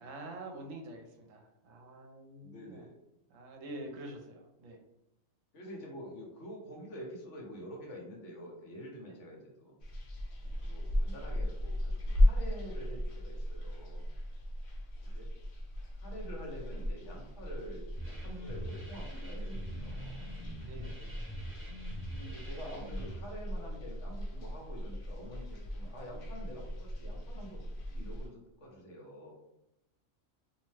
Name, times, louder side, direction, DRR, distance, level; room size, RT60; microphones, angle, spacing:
voice 1, 0.0-2.9 3.3-4.8 9.1-9.2 10.4-10.5 20.6-21.2, right 1 dB, 75° right, 2 dB, 1.0 m, -47 dB
voice 2, 2.4-2.9 5.5-9.7 10.6-14.0 15.0-15.3 16.0-20.2 22.1-27.6 27.8-29.3, equal, 65° left, -2 dB, 1.1 m, -47 dB
sound 1, 9.8-28.3, left 1 dB, 80° left, 1.1 m, -36 dB
sound 2, 17.9-23.2, right 1 dB, 10° right, 0.7 m, -45 dB
2.7 x 2.1 x 3.2 m, 0.89 s
omnidirectional pair, 1.4 m